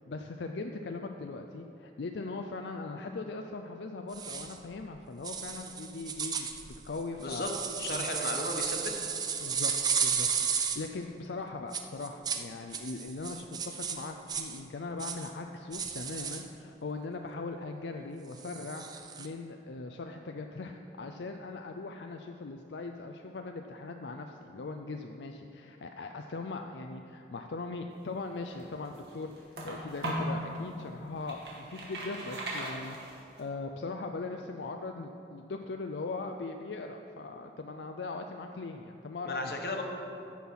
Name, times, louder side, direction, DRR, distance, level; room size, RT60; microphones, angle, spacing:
voice 1, 0.1-7.5 7.9-8.1 9.4-39.5, left 3 dB, 85° left, 5 dB, 0.5 m, -40 dB
sound 1, 4.1-4.5 5.2-10.9 11.7-12.4 12.7-14.6 15.0-15.3 15.7-16.4 18.4-19.3, right 6 dB, 25° right, 0.4 m, -34 dB
voice 2, 7.8-9.1 39.2-39.8, left 2 dB, 60° left, 2 dB, 1.2 m, -35 dB
sound 2, 28.3-30.4 30.9-33.4, right 1 dB, 70° right, 2.2 m, -37 dB
14.5 x 5.9 x 5.6 m, 2.8 s
head